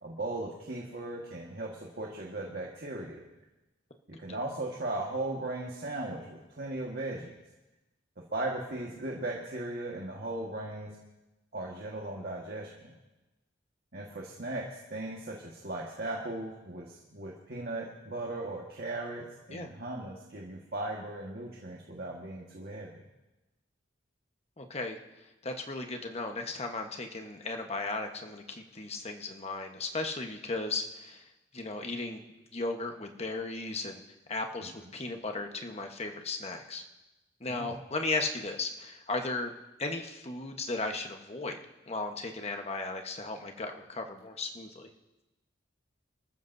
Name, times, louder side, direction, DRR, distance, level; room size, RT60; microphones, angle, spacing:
voice 1, 0.0-3.2 4.1-7.3 8.3-10.9 11.5-12.7 13.9-23.0 34.6-34.7 37.5-37.8, right 2 dB, 55° right, -2 dB, 1.6 m, -37 dB
voice 2, 24.6-25.0 25.4-31.2 31.5-32.2 32.5-34.0 34.3-36.8 37.4-39.5 39.8-41.6 41.9-44.9, left 3 dB, 35° left, 4 dB, 1.2 m, -36 dB
25.5 x 14.0 x 2.7 m, 1.0 s
head